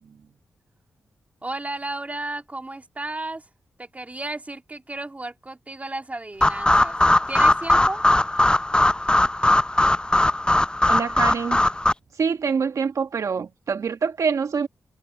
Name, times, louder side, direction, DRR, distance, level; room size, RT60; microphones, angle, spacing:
voice 1, 1.4-3.5 3.8-7.0 7.3-8.0, right 2 dB, 25° right, 2.6 m, -33 dB
sound 1, 6.4-11.9, left 1 dB, 15° left, 0.6 m, -19 dB
voice 2, 10.9-11.6 12.1-14.7, right 6 dB, 70° right, 1.5 m, -25 dB
supercardioid pair, 45°, 6 cm